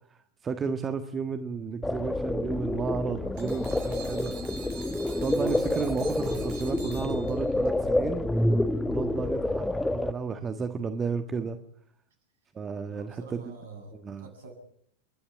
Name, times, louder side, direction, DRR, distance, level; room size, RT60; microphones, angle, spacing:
voice 1, 0.1-4.3 5.2-8.3 8.9-11.6 12.5-13.5 13.9-14.3, right 5 dB, 20° right, 8 dB, 1.4 m, -33 dB
sound 1, 1.8-10.1, left 1 dB, 5° left, 1.1 m, -28 dB
sound 2, 3.4-7.7, right 5 dB, 45° right, 7.2 m, -46 dB
voice 2, 12.9-14.5, right 4 dB, 60° right, 6 dB, 7.7 m, -46 dB
29.5 x 12.5 x 9.7 m, 0.69 s
figure-of-eight pair, 90°, 0 cm